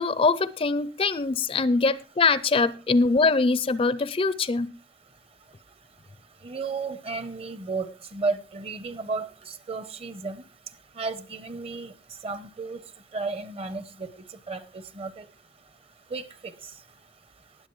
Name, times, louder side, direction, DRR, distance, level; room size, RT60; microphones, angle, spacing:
voice 1, 0.0-4.7, left 3 dB, 30° left, 0.4 m, -23 dB
voice 2, 6.4-9.3 9.7-10.4 11.0-11.9 12.2-12.8 13.1-14.1 14.5-15.2 16.1-16.5, right 3 dB, 30° right, 0.8 m, -33 dB
19.5 x 7.9 x 3.1 m
head